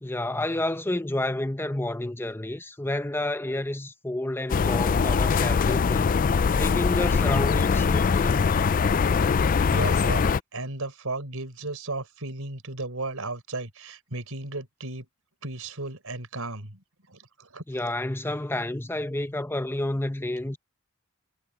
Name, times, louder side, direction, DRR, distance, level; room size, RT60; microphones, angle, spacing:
voice 1, 0.0-6.2 6.5-8.7 17.7-20.6, left 1 dB, 10° left, 0.9 m, -30 dB
sound 1, 4.5-10.4, left 5 dB, 40° left, 0.4 m, -22 dB
voice 2, 9.7-15.1 15.4-17.6, right 2 dB, 75° right, 4.3 m, -35 dB
head